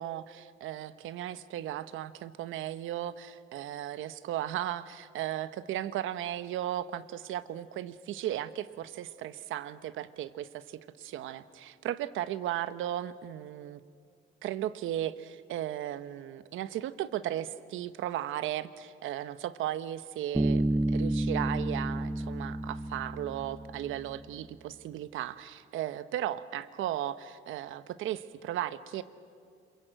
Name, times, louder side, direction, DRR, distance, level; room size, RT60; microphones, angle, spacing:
voice 1, 0.0-13.8 14.4-29.0, right 12 dB, 85° right, 13 dB, 1.0 m, -36 dB
Bass guitar, 20.3-24.0, right 1 dB, 5° right, 0.7 m, -30 dB
27.0 x 22.5 x 7.8 m, 2.2 s
cardioid pair, 90°, 20 cm